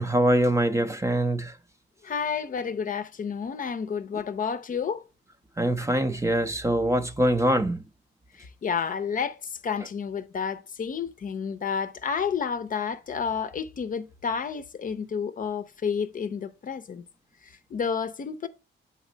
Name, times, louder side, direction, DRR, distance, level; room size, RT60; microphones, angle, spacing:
voice 1, 0.0-1.6 5.6-7.8, right 1 dB, 15° right, 0.6 m, -23 dB
voice 2, 2.0-5.0 8.3-17.0 17.4-18.5, left 6 dB, 40° left, 0.6 m, -30 dB
7.2 x 4.1 x 3.9 m
cardioid pair, 90°, 20 cm